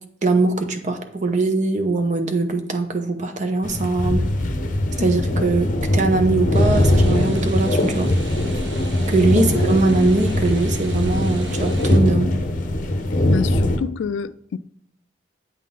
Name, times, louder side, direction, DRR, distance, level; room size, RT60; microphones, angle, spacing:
voice 1, 0.2-4.3 5.0-8.1 9.1-12.3, right 3 dB, 40° right, 0.8 m, -21 dB
sound 1, 3.6-13.8, left 1 dB, 45° left, 0.7 m, -21 dB
sound 2, 6.5-12.0, right 3 dB, 80° right, 1.1 m, -40 dB
voice 2, 13.3-14.6, left 6 dB, 80° left, 0.3 m, -28 dB
8.2 x 3.7 x 3.7 m
head